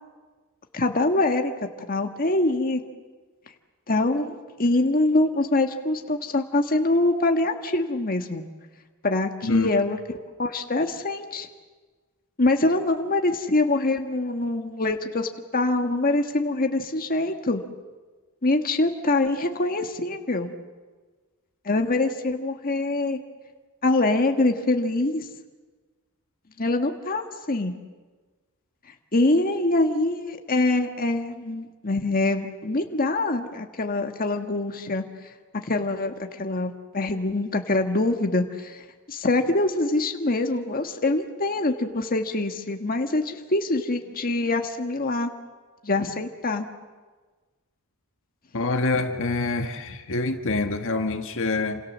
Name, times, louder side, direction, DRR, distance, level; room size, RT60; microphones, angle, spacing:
voice 1, 0.7-1.5 1.9-2.8 3.9-8.4 9.0-11.5 12.4-17.6 18.4-20.5 21.6-23.2 23.8-25.2 26.6-27.7 29.1-35.0 35.6-38.8 39.1-45.3 45.8-46.7, left 2 dB, 40° left, 5 dB, 1.6 m, -24 dB
voice 2, 9.4-9.8 48.5-51.8, left 3 dB, 60° left, 6 dB, 1.6 m, -26 dB
29.0 x 27.0 x 7.4 m, 1.3 s
head